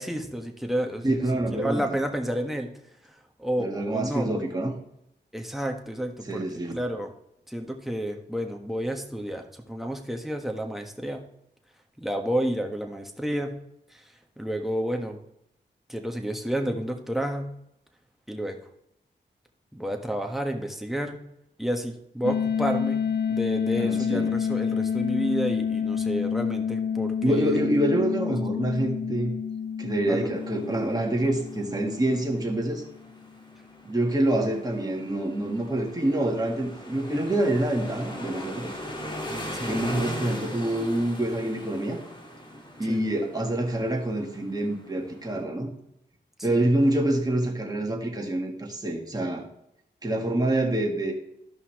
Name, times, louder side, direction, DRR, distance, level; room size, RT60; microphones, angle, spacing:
voice 1, 0.0-1.2 1.6-2.7 3.0-4.3 5.3-6.4 6.7-7.1 7.5-11.2 12.0-13.5 13.9-14.0 14.4-15.2 15.9-17.5 18.3-18.6 19.7-21.2 21.6-27.6 30.1-30.2 37.1-37.3 39.5-39.8 42.9-43.0 46.4-46.7, equal, ahead, 3 dB, 1.5 m, -30 dB
voice 2, 1.0-2.0 3.6-4.7 6.3-6.8 23.8-24.3 27.2-29.3 29.8-32.8 33.8-38.7 39.6-42.0 42.8-45.7 46.4-49.4 50.0-51.1, right 1 dB, 20° right, 0 dB, 1.8 m, -26 dB
sound 1, 22.2-32.9, left 7 dB, 65° left, 0.8 m, -29 dB
sound 2, 30.3-45.4, equal, 25° left, 1.8 m, -40 dB
13.5 x 5.6 x 3.2 m, 0.76 s
cardioid pair, 60°, 19 cm